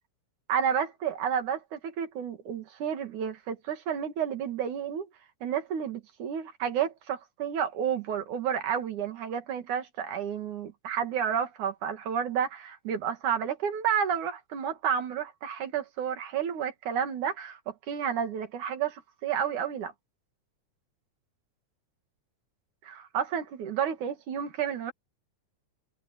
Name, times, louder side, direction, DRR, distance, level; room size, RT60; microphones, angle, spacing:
voice 1, 0.5-5.1 5.4-19.9 22.8-24.9, right 8 dB, 75° right, 3.5 m, -31 dB
omnidirectional pair, 3.5 m